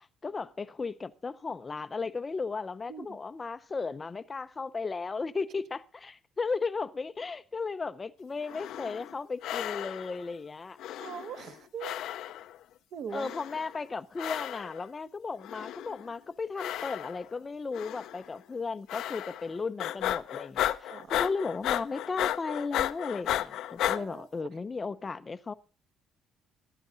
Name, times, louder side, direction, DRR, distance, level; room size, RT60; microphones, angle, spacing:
voice 1, 0.0-10.8 13.1-25.5, left 4 dB, 20° left, 0.6 m, -35 dB
voice 2, 2.9-3.2 10.9-12.0 12.9-13.3 20.9-21.1 23.9-24.5, right 7 dB, 50° right, 1.2 m, -41 dB
sound 1, 8.4-9.1 9.4-10.2 10.8-11.6 11.8-12.6 13.1-13.8 14.2-14.8 15.4-16.1 16.6-17.3 17.7-18.2 18.9-19.5 19.8-24.0, left 12 dB, 65° left, 0.6 m, -34 dB
14.5 x 12.0 x 3.9 m
cardioid pair, 180°, 0 cm